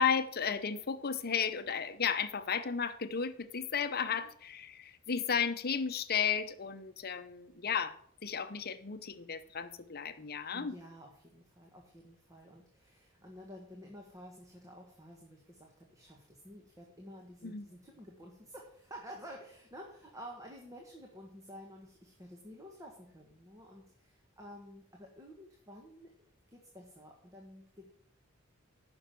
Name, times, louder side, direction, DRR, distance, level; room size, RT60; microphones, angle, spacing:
voice 1, 0.0-7.9 8.2-10.7 17.4-17.6, left 6 dB, 50° left, 11 dB, 0.8 m, -34 dB
voice 2, 4.0-4.3 10.5-26.1 26.5-27.9, equal, 15° right, 0 dB, 1.6 m, -51 dB
10.0 x 6.2 x 7.7 m, 0.64 s
head